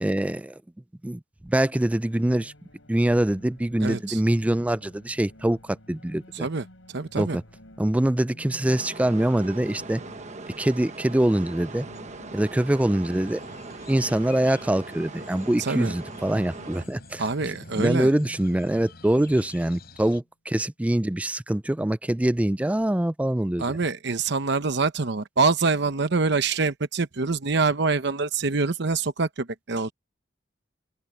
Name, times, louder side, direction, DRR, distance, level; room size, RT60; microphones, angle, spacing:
voice 1, 0.0-0.6 1.0-2.5 2.9-6.5 7.2-7.4 7.8-10.0 10.6-11.9 12.3-13.4 13.9-17.2 17.8-23.8, right 1 dB, 5° right, 0.3 m, -24 dB
sound 1, 1.6-20.2, equal, 75° left, 7.7 m, -51 dB
voice 2, 3.8-4.2 6.4-6.6 6.9-7.4 15.6-15.9 17.2-18.1 23.6-29.9, right 4 dB, 60° right, 0.9 m, -25 dB
sound 2, 8.7-16.9, right 3 dB, 35° right, 1.2 m, -40 dB
sound 3, 13.1-20.2, left 3 dB, 55° left, 5.1 m, -49 dB
open air
head